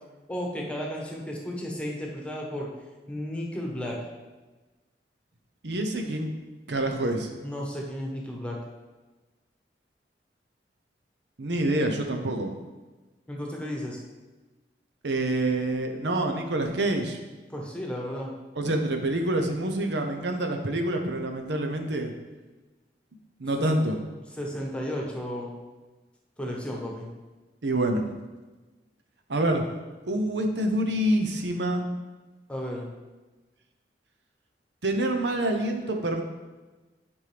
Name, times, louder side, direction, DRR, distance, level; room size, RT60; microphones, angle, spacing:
voice 1, 0.3-2.7 3.1-4.0 7.4-8.6 13.3-14.0 17.5-18.3 23.6-23.7 24.4-25.6 26.4-27.1 32.5-32.9, equal, 5° left, -1 dB, 1.2 m, -33 dB
voice 2, 5.6-6.3 6.7-7.3 11.4-12.5 15.0-17.2 18.6-22.1 23.4-24.0 27.6-28.0 29.3-29.6 30.0-31.9 34.8-36.2, right 1 dB, 80° right, 4 dB, 0.8 m, -26 dB
9.5 x 5.4 x 3.4 m, 1.2 s
head